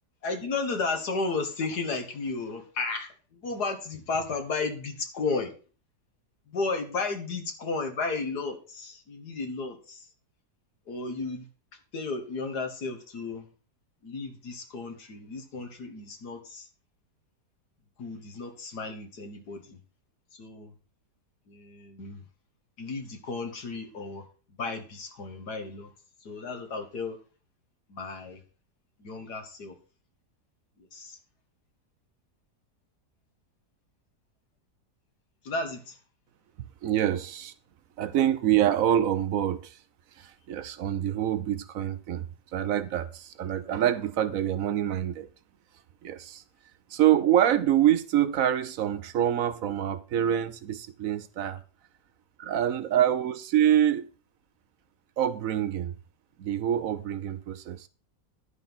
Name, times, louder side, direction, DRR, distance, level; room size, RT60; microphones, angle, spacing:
voice 1, 0.2-5.5 6.5-10.1 10.9-11.5 11.9-13.5 14.0-16.7 18.0-19.8 20.3-20.8 21.5-22.2 22.8-25.9 26.2-27.2 27.9-28.4 29.0-29.8 30.8-31.2 35.4-36.0, left 3 dB, 70° left, 2.1 m, -33 dB
voice 2, 36.8-37.5 38.0-39.6 40.5-42.2 42.5-45.3 46.0-46.4 46.9-51.6 52.4-54.1 55.2-55.9 56.4-57.9, right 11 dB, 60° right, 1.0 m, -25 dB
11.0 x 5.4 x 6.0 m
omnidirectional pair, 1.8 m